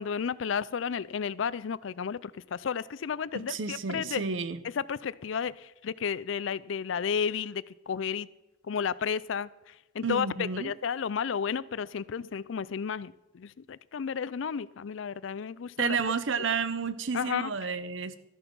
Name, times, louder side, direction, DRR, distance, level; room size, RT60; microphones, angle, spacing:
voice 1, 0.0-4.2 4.8-8.3 8.6-9.5 9.9-16.0 17.1-17.5, left 6 dB, 70° left, 19 dB, 0.4 m, -32 dB
voice 2, 3.3-4.6 10.0-10.7 15.8-18.2, right 5 dB, 70° right, 14 dB, 0.8 m, -31 dB
13.0 x 10.5 x 5.4 m, 0.98 s
head